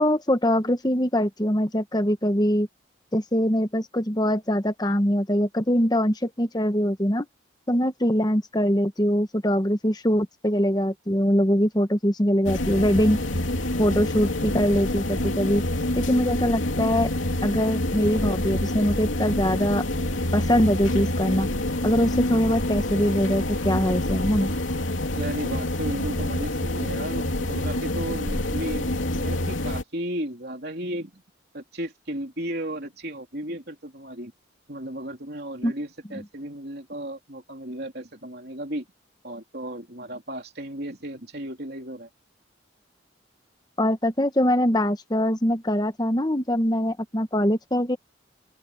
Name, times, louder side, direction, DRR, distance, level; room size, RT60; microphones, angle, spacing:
voice 1, 0.0-2.7 3.1-7.3 7.7-13.2 13.8-15.6 16.0-17.1 17.4-19.8 20.3-21.5 21.8-24.5 35.6-35.7 43.8-48.0, equal, 20° left, 1.2 m, -23 dB
sound 1, 12.4-29.8, left 1 dB, 85° left, 2.9 m, -27 dB
voice 2, 25.1-31.2 31.5-34.3 34.7-38.9 39.2-42.1, right 1 dB, 55° right, 3.5 m, -34 dB
open air
head